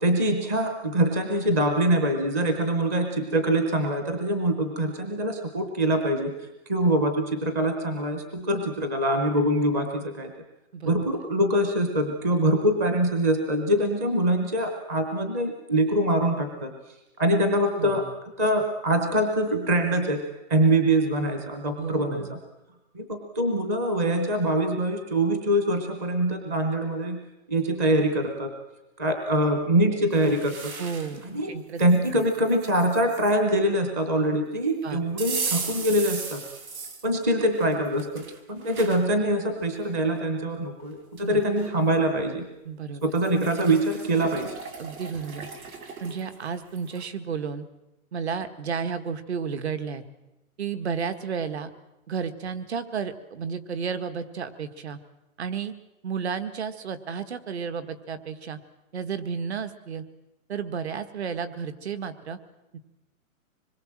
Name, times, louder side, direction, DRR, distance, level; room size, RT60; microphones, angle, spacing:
voice 1, 0.0-10.3 10.8-16.9 17.2-18.0 18.4-22.4 22.9-27.2 27.5-28.5 29.0-30.7 31.3-31.5 31.8-36.4 37.0-42.4 43.0-44.5, right 1 dB, 10° right, 5 dB, 0.8 m, -24 dB
voice 2, 17.8-18.1 21.8-22.4 30.8-31.8 32.1-32.2 34.8-35.0 41.2-41.4 42.7-43.0 44.8-45.5 46.0-47.6 48.1-50.0 50.6-51.7 52.1-55.0 55.4-55.8 56.0-58.6 58.9-60.0 60.5-62.4 62.7-62.8, right 6 dB, 50° right, 10 dB, 1.9 m, -32 dB
sound 1, 30.1-31.3 31.8-33.3 35.2-37.1 37.6-39.0 39.6-39.7 40.8-40.9 41.2-41.7 43.0-47.1, right 5 dB, 80° right, 4.4 m, -37 dB
25.5 x 21.5 x 7.5 m, 0.94 s
hypercardioid pair, 175°, 42 cm